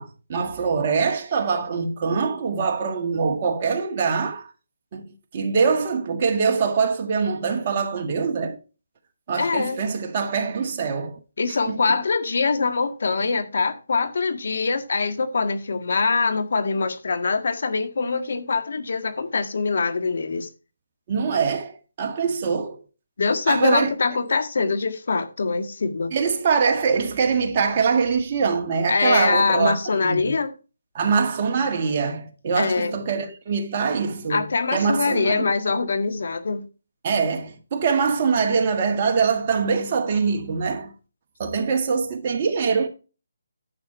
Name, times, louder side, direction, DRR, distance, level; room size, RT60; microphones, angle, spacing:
voice 1, 0.0-4.5 4.9-8.6 9.3-11.2 11.7-12.0 21.1-22.8 23.5-23.9 26.1-30.3 30.9-35.5 37.0-40.9 41.4-42.9, right 5 dB, 35° right, 1.8 m, -23 dB
voice 2, 9.4-9.8 11.4-20.5 23.2-26.1 28.9-30.5 32.6-33.0 34.3-36.6, left 4 dB, 65° left, 1.7 m, -23 dB
10.5 x 6.3 x 4.5 m
hypercardioid pair, 165°, 0 cm